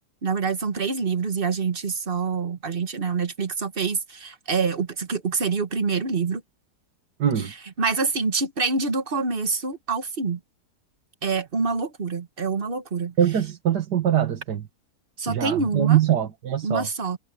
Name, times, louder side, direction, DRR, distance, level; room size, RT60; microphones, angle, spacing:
voice 1, 0.2-6.4 7.4-10.4 11.2-13.1 15.2-16.0 16.6-17.2, right 4 dB, 35° right, 1.5 m, -26 dB
voice 2, 7.2-7.5 13.2-14.7 15.3-16.9, right 10 dB, 90° right, 2.1 m, -22 dB
omnidirectional pair, 1.7 m